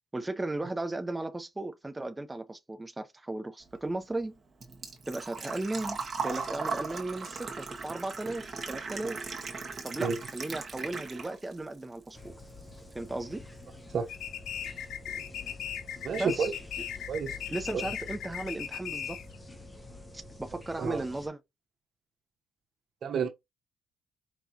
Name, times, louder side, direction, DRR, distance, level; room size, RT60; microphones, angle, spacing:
voice 1, 0.1-4.4 5.1-6.0 6.2-9.2 9.8-12.3 12.9-13.5 16.2-16.5 17.5-19.2 20.1-21.4, right 2 dB, 15° right, 0.7 m, -36 dB
Engine / Trickle dribble / Fill (with liquid), 3.7-11.6 11.9-12.9 13.2-13.3 15.2-15.3 15.5-15.8 16.2-16.3 16.5-16.6, right 4 dB, 40° right, 1.4 m, -38 dB
sound 1, 12.1-21.3, left 3 dB, 20° left, 0.9 m, -48 dB
sound 2, 14.1-19.4, left 10 dB, 75° left, 0.7 m, -38 dB
voice 2, 16.0-16.5 17.1-17.3 17.7-17.8 20.8-21.0 23.0-23.3, right 6 dB, 60° right, 0.9 m, -29 dB
4.9 x 3.0 x 2.8 m
cardioid pair, 90°, 0 cm